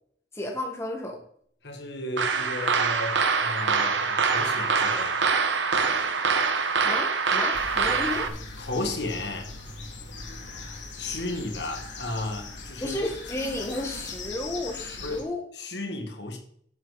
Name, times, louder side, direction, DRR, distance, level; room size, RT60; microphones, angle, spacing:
voice 1, 0.3-1.2 6.8-8.3 12.8-15.4, left 1 dB, 15° left, 1.6 m, -32 dB
voice 2, 1.6-5.3 8.6-9.5 11.0-13.0 15.0-15.3 15.5-16.4, left 2 dB, 70° left, 2.0 m, -34 dB
sound 1, 2.2-8.3, right 5 dB, 85° right, 1.2 m, -24 dB
sound 2, 7.5-15.2, left 3 dB, 85° left, 2.6 m, -40 dB
10.5 x 8.2 x 4.1 m
head